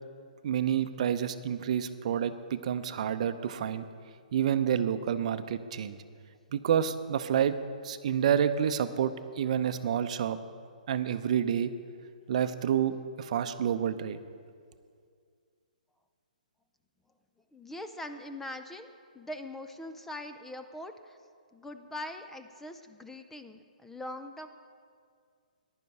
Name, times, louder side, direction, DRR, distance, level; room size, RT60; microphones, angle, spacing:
voice 1, 0.4-3.9 4.3-6.0 6.5-7.6 7.8-10.4 10.9-11.7 12.3-14.2, right 9 dB, 50° right, 11 dB, 0.7 m, -29 dB
voice 2, 17.5-21.2 21.5-24.5, left 1 dB, 5° left, 9 dB, 0.4 m, -42 dB
15.0 x 11.0 x 4.7 m, 2.2 s
hypercardioid pair, 140°, 5 cm